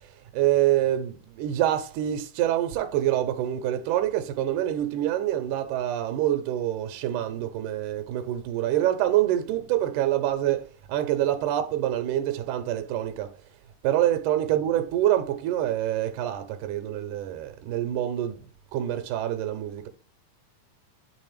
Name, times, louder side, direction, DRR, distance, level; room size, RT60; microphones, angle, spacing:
voice 1, 0.3-10.6 10.9-13.3 13.8-18.4 18.7-19.9, right 12 dB, 85° right, 2.2 m, -26 dB
8.4 x 3.8 x 3.3 m
omnidirectional pair, 3.7 m